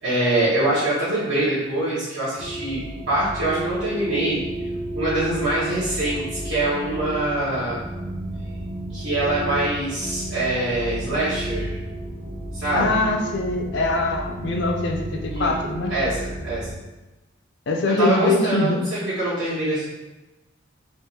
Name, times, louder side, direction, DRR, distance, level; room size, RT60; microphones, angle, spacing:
voice 1, 0.0-2.8 3.1-4.4 4.9-7.8 8.9-11.8 12.5-13.0 15.3-15.5 15.9-16.7 18.0-19.8, right 1 dB, 65° right, -13 dB, 1.3 m, -24 dB
sound 1, 2.4-16.7, right 1 dB, 35° right, 1.1 m, -32 dB
voice 2, 12.7-15.9 17.7-18.8, left 2 dB, 60° left, 2 dB, 0.5 m, -23 dB
3.5 x 2.6 x 4.3 m, 1.1 s
head